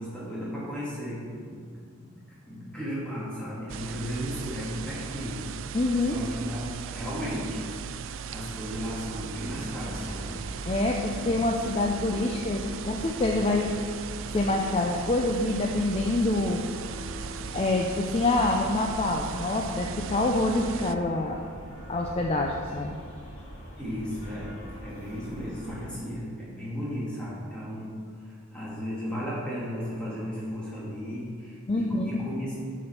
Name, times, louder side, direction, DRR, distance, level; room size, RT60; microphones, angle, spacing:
voice 1, 0.0-1.6 1.9-5.5 6.0-7.7 8.3-10.4 11.1-11.5 23.8-32.5, equal, 5° left, -8 dB, 2.2 m, -35 dB
sound 1, 3.7-21.0, right 7 dB, 60° right, 0.3 m, -38 dB
voice 2, 5.7-6.2 10.7-13.7 14.3-16.6 17.5-21.4 21.9-23.0 31.7-32.2, left 2 dB, 25° left, 1 dB, 0.4 m, -26 dB
sound 2, 9.4-25.8, equal, 80° left, 2.0 m, -43 dB
8.0 x 5.1 x 5.8 m, 2.1 s
head